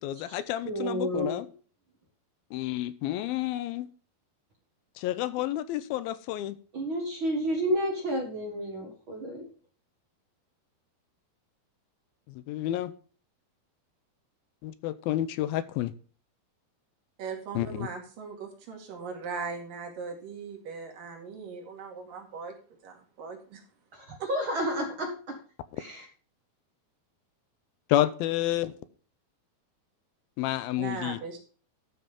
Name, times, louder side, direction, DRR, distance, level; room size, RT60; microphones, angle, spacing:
voice 1, 0.0-1.4 2.5-3.9 5.0-6.6 12.5-12.9 14.6-15.9 17.6-17.9 27.9-28.7 30.4-31.2, left 14 dB, 85° left, 14 dB, 2.5 m, -30 dB
voice 2, 0.6-1.4 6.7-9.5 23.9-25.4 25.8-26.1, equal, 45° right, 2 dB, 1.7 m, -31 dB
voice 3, 17.2-22.6 22.8-23.6 24.2-24.3 30.8-31.4, right 5 dB, 65° right, 2 dB, 3.8 m, -39 dB
12.5 x 6.3 x 5.2 m, 0.40 s
omnidirectional pair, 4.3 m